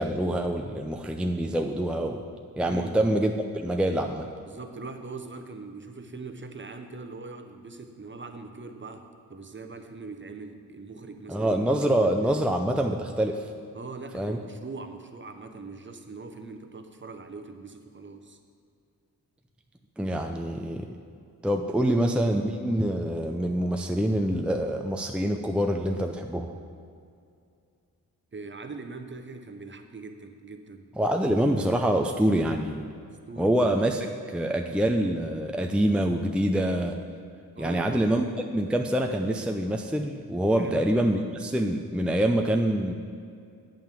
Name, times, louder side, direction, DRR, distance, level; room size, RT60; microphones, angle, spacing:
voice 1, 0.0-2.2 2.6-4.3 11.3-13.5 14.1-14.4 20.0-21.0 21.4-26.5 31.0-32.9 33.4-37.0 37.6-38.2 38.5-42.9, right 1 dB, 5° right, 4 dB, 0.6 m, -25 dB
voice 2, 2.6-3.0 4.5-11.6 12.0-12.5 13.7-18.4 25.9-26.1 28.3-30.9 33.3-33.5 37.5-38.0 40.6-40.8, right 3 dB, 30° right, 6 dB, 1.0 m, -41 dB
8.6 x 5.6 x 7.6 m, 2.4 s
cardioid pair, 55°, 38 cm